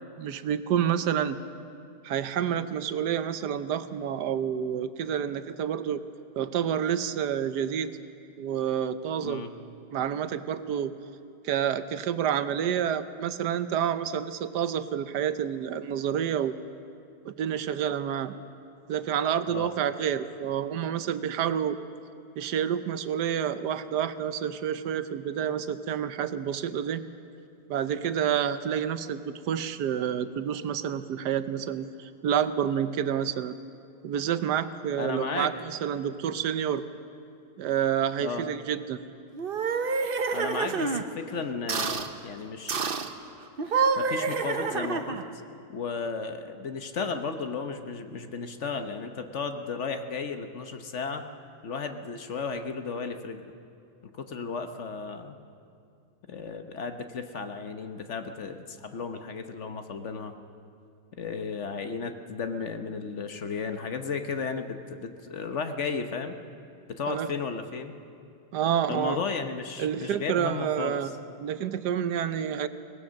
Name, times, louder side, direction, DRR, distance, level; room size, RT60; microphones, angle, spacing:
voice 1, 0.2-1.4 2.0-6.0 6.4-7.9 8.4-9.4 9.9-10.9 11.4-16.5 17.2-18.3 18.9-21.8 22.4-27.0 27.7-33.5 34.0-36.8 37.6-39.0 67.1-67.3 68.5-69.2 69.8-71.1 71.4-72.7, right 9 dB, 75° right, 12 dB, 1.3 m, -29 dB
voice 2, 35.0-35.5 38.2-38.5 40.3-42.9 44.0-45.2 45.7-51.2 51.6-53.5 54.1-55.4 56.3-60.3 61.2-66.4 66.9-68.0 68.9-71.0, left 5 dB, 50° left, 7 dB, 1.1 m, -34 dB
sound 1, 39.3-41.0 41.7-42.1 42.7-43.1 43.6-45.3, right 5 dB, 45° right, 0.8 m, -28 dB
23.0 x 18.5 x 6.4 m, 2.4 s
omnidirectional pair, 1.8 m